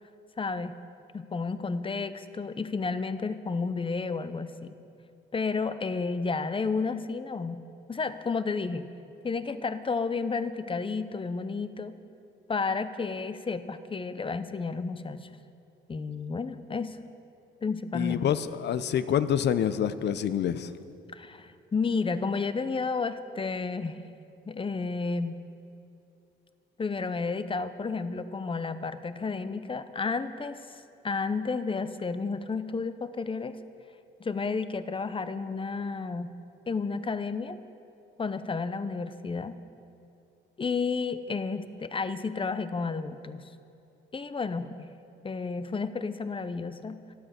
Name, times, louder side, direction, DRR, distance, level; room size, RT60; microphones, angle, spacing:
voice 1, 0.4-0.8 1.1-4.8 5.3-7.6 7.9-8.9 9.2-12.0 12.5-15.3 15.9-17.0 17.6-18.2 21.1-24.0 24.4-25.3 26.8-33.6 34.2-36.3 36.7-37.6 38.2-39.6 40.6-43.5 44.1-44.8 45.2-47.1, left 4 dB, 25° left, 12 dB, 0.7 m, -31 dB
voice 2, 17.9-20.7, left 9 dB, 60° left, 13 dB, 0.7 m, -27 dB
13.0 x 12.5 x 6.7 m, 2.7 s
cardioid pair, 90°, 20 cm